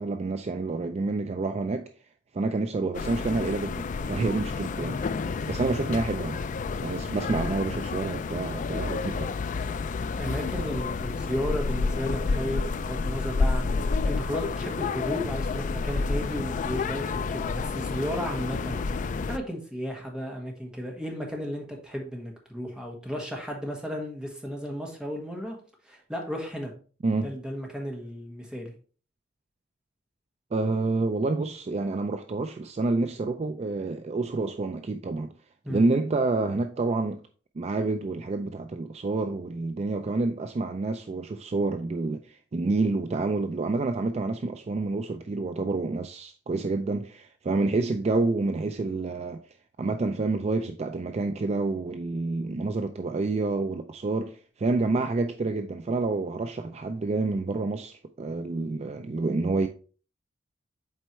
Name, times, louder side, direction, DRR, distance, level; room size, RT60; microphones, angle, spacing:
voice 1, 0.0-1.9 2.3-5.0 5.5-6.4 6.8-9.3 27.0-27.3 30.5-35.3 35.7-37.2 37.6-49.4 49.8-59.7, right 3 dB, 35° right, 0.4 m, -28 dB
sound 1, 2.9-19.4, left 4 dB, 45° left, 0.3 m, -30 dB
voice 2, 10.2-25.6 25.8-26.7 27.2-28.7 35.6-35.9, equal, 5° right, 1.5 m, -34 dB
7.6 x 4.4 x 3.1 m
head